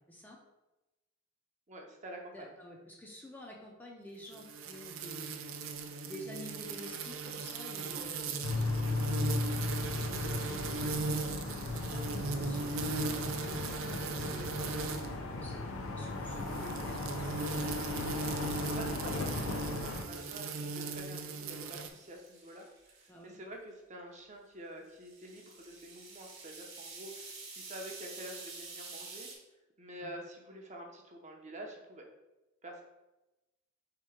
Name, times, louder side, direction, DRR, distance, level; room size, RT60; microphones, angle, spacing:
voice 1, 1.7-2.5 18.7-29.3 29.8-32.0 32.6-32.8, right 1 dB, 35° right, 1 dB, 0.6 m, -48 dB
voice 2, 2.3-5.4 6.1-8.7 9.9-10.9 11.5-17.0 23.1-23.4 30.0-30.1, equal, 10° left, -2 dB, 0.4 m, -50 dB
sound 1, 4.3-15.2 16.2-21.9, right 3 dB, 80° right, 0.4 m, -38 dB
sound 2, 8.4-20.0, left 2 dB, 85° left, 0.5 m, -36 dB
sound 3, 20.1-23.1 24.9-29.3, right 4 dB, 50° right, 1.1 m, -49 dB
3.6 x 2.9 x 4.8 m, 1.0 s
head